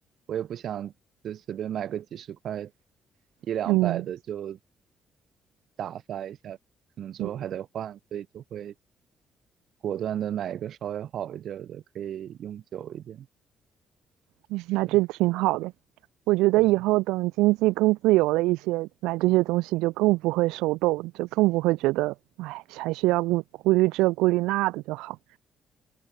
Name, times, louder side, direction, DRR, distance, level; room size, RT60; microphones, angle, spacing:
voice 1, 0.3-0.9 1.2-2.7 3.4-4.6 5.8-6.6 7.0-8.7 9.8-13.3 14.8-15.0 16.6-16.8, right 10 dB, 70° right, 2.1 m, -34 dB
voice 2, 3.7-4.0 7.2-7.3 14.5-15.7 16.3-25.2, right 20 dB, 85° right, 0.6 m, -24 dB
supercardioid pair, 60°, 0 cm